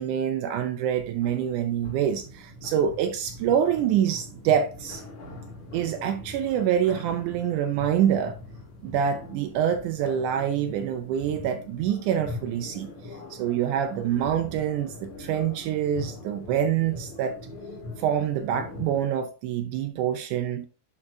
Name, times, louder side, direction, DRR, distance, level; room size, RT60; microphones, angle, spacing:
voice 1, 0.0-5.0 5.7-8.4 8.8-17.4 18.0-20.7, right 9 dB, 80° right, 1.9 m, -26 dB
sound 1, 0.9-19.1, left 1 dB, 70° left, 3.6 m, -42 dB
11.0 x 4.2 x 2.6 m
omnidirectional pair, 3.7 m